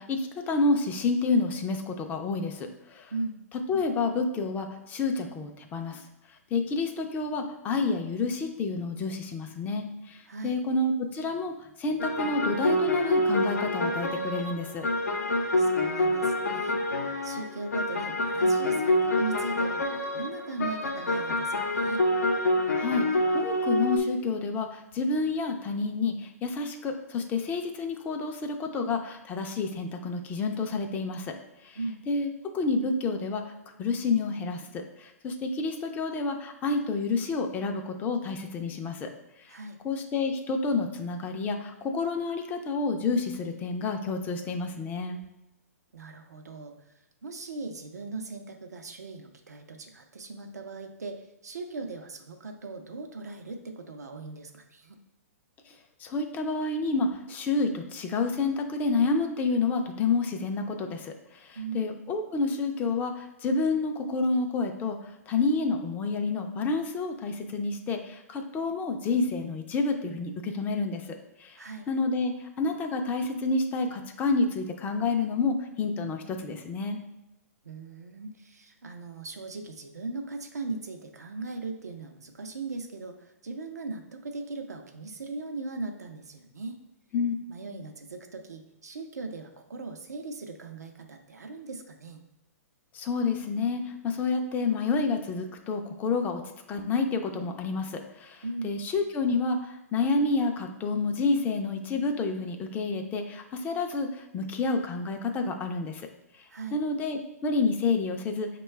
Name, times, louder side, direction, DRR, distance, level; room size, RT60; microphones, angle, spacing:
voice 1, 0.0-3.1 3.7-6.0 6.5-14.9 22.8-31.3 31.6-31.8 32.1-33.4 33.8-39.1 39.8-45.2 56.0-65.0 65.3-71.0 71.4-71.6 71.9-77.0 87.1-87.3 92.9-96.4 96.7-106.1 106.7-108.5, left 3 dB, 20° left, 5 dB, 0.4 m, -29 dB
sound 1, 12.0-24.0, left 1 dB, 90° left, 0.6 m, -27 dB
voice 2, 15.6-16.7 17.2-22.0 31.8-32.0 39.5-39.8 45.9-46.7 47.2-55.0 61.5-61.8 71.6-71.9 77.6-86.8 87.5-92.2 98.4-98.7 106.5-106.8, right 3 dB, 90° right, 5 dB, 0.5 m, -38 dB
5.5 x 2.2 x 3.1 m, 0.92 s
hypercardioid pair, 130°, 9 cm